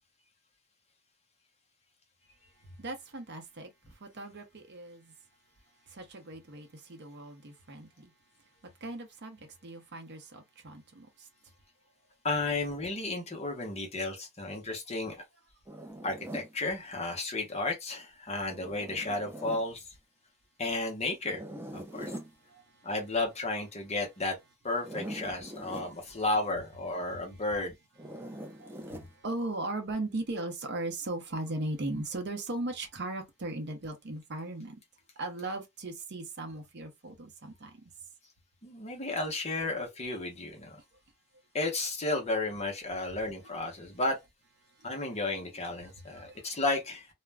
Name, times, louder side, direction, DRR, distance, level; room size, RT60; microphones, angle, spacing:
voice 1, 2.8-5.1 5.9-8.1 8.6-11.3 22.4-22.9 25.6-26.2 27.1-27.4 28.1-34.8 35.2-37.8 43.5-43.6 44.7-44.9 45.8-46.6, right 2 dB, 50° right, 0.7 m, -39 dB
voice 2, 12.2-15.2 16.0-19.8 20.6-21.4 21.7-22.1 22.8-24.4 24.6-27.7 38.6-40.8 41.5-44.2 44.8-47.1, left 2 dB, 30° left, 0.8 m, -33 dB
Zipper (clothing), 15.7-16.5 18.5-19.7 21.2-22.3 24.7-25.9 28.0-29.1, right 1 dB, 10° right, 0.4 m, -42 dB
2.4 x 2.1 x 3.3 m
head